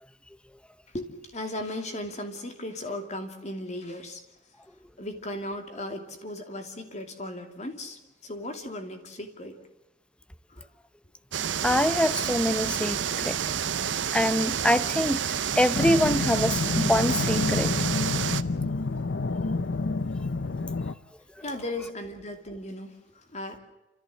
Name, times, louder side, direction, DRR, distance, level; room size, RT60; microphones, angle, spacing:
voice 1, 0.9-4.2 5.0-9.7 10.5-10.6 21.4-23.6, left 1 dB, 40° left, 2.7 m, -36 dB
sound 1, 11.3-18.4, right 8 dB, 85° right, 0.8 m, -29 dB
voice 2, 11.6-13.4 14.1-17.8, equal, 5° left, 0.6 m, -25 dB
sound 2, 15.7-20.9, left 3 dB, 75° left, 0.7 m, -28 dB
29.5 x 14.5 x 7.6 m
head